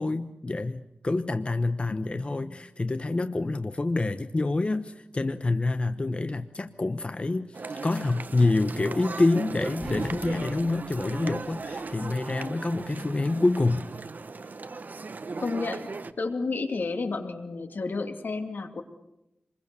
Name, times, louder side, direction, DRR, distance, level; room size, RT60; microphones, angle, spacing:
voice 1, 0.0-13.9, left 2 dB, 35° left, 10 dB, 1.0 m, -27 dB
voice 2, 2.2-2.6 15.4-15.9 16.2-18.8, left 3 dB, 80° left, 6 dB, 2.5 m, -31 dB
sound 1, 6.9-9.2 9.6-13.8, equal, 15° left, 4.5 m, -48 dB
sound 2, 7.5-16.1, right 4 dB, 65° right, 1.2 m, -37 dB
27.5 x 22.0 x 6.9 m, 0.91 s
wide cardioid pair, 95°, 3 cm